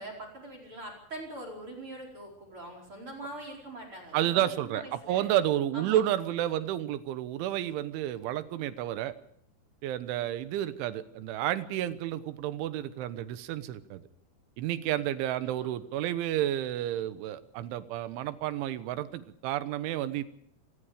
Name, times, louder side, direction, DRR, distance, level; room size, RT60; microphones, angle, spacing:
voice 1, 0.0-5.3 5.7-6.0 15.4-15.7, right 1 dB, 30° right, 3 dB, 5.1 m, -43 dB
voice 2, 4.1-9.2 9.8-14.0 14.6-20.2, right 12 dB, 85° right, 13 dB, 3.5 m, -31 dB
27.5 x 19.5 x 5.1 m, 0.66 s
omnidirectional pair, 5.4 m